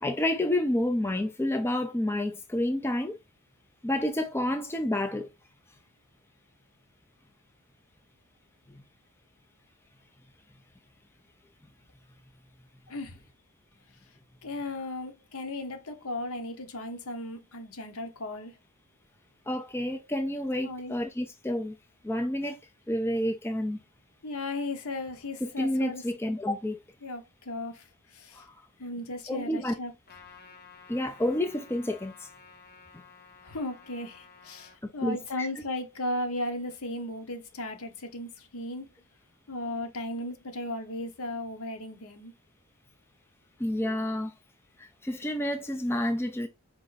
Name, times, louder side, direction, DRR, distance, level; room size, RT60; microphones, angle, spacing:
voice 1, 0.0-3.2 3.8-5.3 8.7-8.8 19.5-21.8 22.0-22.6 22.9-23.8 25.4-26.8 28.3-28.5 29.3-29.7 30.9-32.3 34.8-35.5 43.6-44.3 44.8-46.5, left 1 dB, 10° left, 0.5 m, -29 dB
voice 2, 12.9-13.2 14.4-18.6 20.6-20.9 24.2-26.0 27.0-28.5 28.8-29.9 33.4-38.9 39.5-42.3, left 1 dB, 65° left, 1.0 m, -36 dB
Trumpet, 30.1-34.8, left 5 dB, 45° left, 1.0 m, -53 dB
4.6 x 2.6 x 3.8 m
head